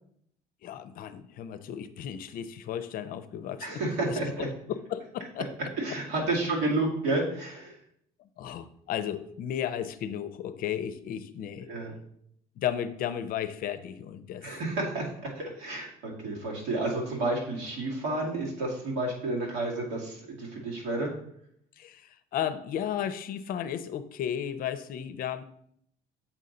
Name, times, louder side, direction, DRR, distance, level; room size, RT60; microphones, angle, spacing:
voice 1, 0.6-3.8 4.1-5.5 8.4-11.7 12.6-14.5 21.8-25.4, left 9 dB, 60° left, 12 dB, 0.5 m, -34 dB
voice 2, 3.6-4.5 5.8-7.8 11.7-11.9 14.4-21.1, right 2 dB, 85° right, -2 dB, 2.1 m, -31 dB
7.2 x 4.1 x 3.8 m, 0.69 s
cardioid pair, 100°, 17 cm